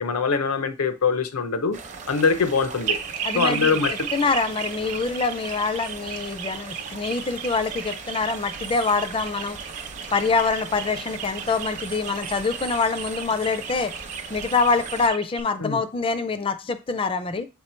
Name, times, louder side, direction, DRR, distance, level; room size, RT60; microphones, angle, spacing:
voice 1, 0.0-1.8 2.1-3.0 3.4-4.1 15.6-15.8, left 5 dB, 85° left, 0.7 m, -23 dB
sound 1, 1.7-15.1, right 4 dB, 35° right, 0.7 m, -39 dB
sound 2, 2.9-15.4, right 8 dB, 80° right, 0.7 m, -34 dB
voice 2, 3.2-3.8 4.1-9.6 10.1-13.9 14.3-17.5, left 4 dB, 25° left, 0.4 m, -25 dB
7.2 x 3.0 x 4.3 m
head